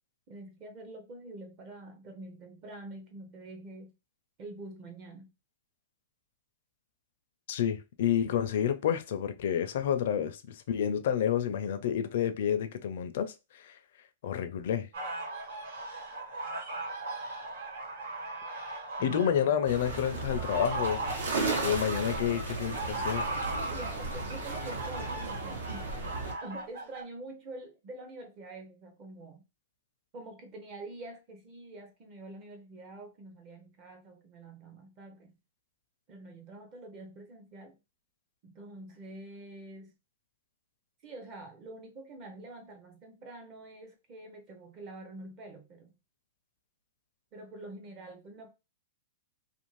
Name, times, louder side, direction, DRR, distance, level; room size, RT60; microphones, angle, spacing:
voice 1, 0.3-3.9 4.4-5.3 19.0-19.3 23.4-25.9 26.4-29.5 30.1-35.4 36.1-37.8 38.4-39.9 41.0-45.9 47.3-48.5, right 2 dB, 30° right, 0.6 m, -46 dB
voice 2, 7.5-13.8 14.2-14.9 19.0-21.1 21.6-23.3, left 9 dB, 55° left, 0.4 m, -29 dB
sound 1, 14.9-27.0, right 2 dB, 65° right, 1.2 m, -38 dB
sound 2, 19.6-26.3, right 3 dB, 80° right, 1.1 m, -35 dB
2.5 x 2.4 x 3.1 m
hypercardioid pair, 165°, 0 cm